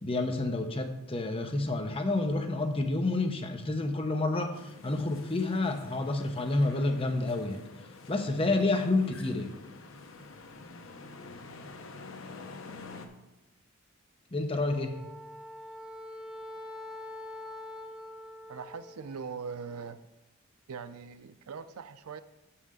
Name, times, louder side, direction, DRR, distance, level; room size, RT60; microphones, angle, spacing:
voice 1, 0.0-7.6 8.1-9.6 14.3-14.9, left 2 dB, 25° left, 5 dB, 0.8 m, -29 dB
sound 1, 4.5-13.1, left 3 dB, 60° left, 0.8 m, -48 dB
Wind instrument woodwind instrument, 14.6-19.1, left 1 dB, 5° right, 0.5 m, -44 dB
voice 2, 18.5-20.0 20.7-22.2, right 5 dB, 90° right, 13 dB, 0.5 m, -41 dB
6.2 x 5.7 x 6.7 m, 0.96 s
head